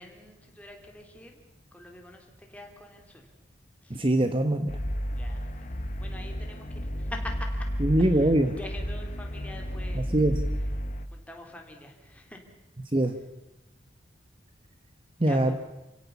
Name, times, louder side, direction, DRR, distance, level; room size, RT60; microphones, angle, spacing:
voice 1, 0.0-1.4 1.7-3.3 3.8-4.1 5.1-5.7 6.0-7.7 8.0-10.3 11.1-12.4 15.2-15.5, left 1 dB, 5° left, 2 dB, 3.2 m, -45 dB
voice 2, 3.9-4.8 7.8-8.5 9.9-10.3 12.9-13.2 15.2-15.5, right 1 dB, 30° right, 8 dB, 1.1 m, -23 dB
sound 1, 4.7-11.1, equal, 40° left, 1.1 m, -32 dB
28.5 x 17.0 x 7.1 m, 1.0 s
head